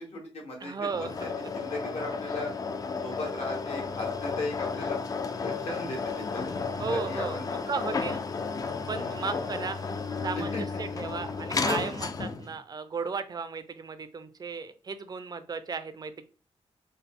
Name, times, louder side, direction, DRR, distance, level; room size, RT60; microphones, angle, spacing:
voice 1, 0.0-2.5 3.0-5.0 5.4-6.4 6.9-7.5 8.9-9.2 10.5-10.8, left 2 dB, 70° left, 0 dB, 1.3 m, -37 dB
voice 2, 0.6-1.3 6.8-7.4 7.7-8.2 8.9-9.8 10.2-16.2, right 4 dB, 40° right, 11 dB, 0.4 m, -35 dB
sound 1, 0.8-12.5, left 4 dB, 35° left, 0.3 m, -33 dB
3.8 x 2.1 x 3.6 m, 0.37 s
wide cardioid pair, 140°, 11 cm